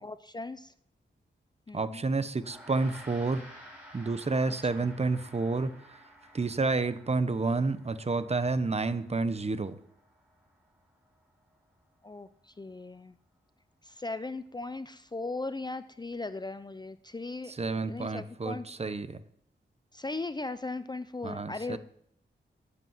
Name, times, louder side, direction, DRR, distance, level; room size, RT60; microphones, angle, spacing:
voice 1, 0.0-0.7 1.7-2.0 4.6-4.9 12.0-13.1 13.8-17.5 17.9-18.7 19.9-21.8, left 3 dB, 20° left, 13 dB, 0.5 m, -38 dB
voice 2, 1.7-3.4 3.9-5.7 6.3-9.8 17.6-19.2 21.2-21.8, right 3 dB, 30° right, 12 dB, 0.9 m, -29 dB
Gong, 2.4-12.0, equal, 5° right, 4.9 m, -54 dB
13.0 x 8.3 x 9.5 m, 0.69 s
wide cardioid pair, 160°, 20 cm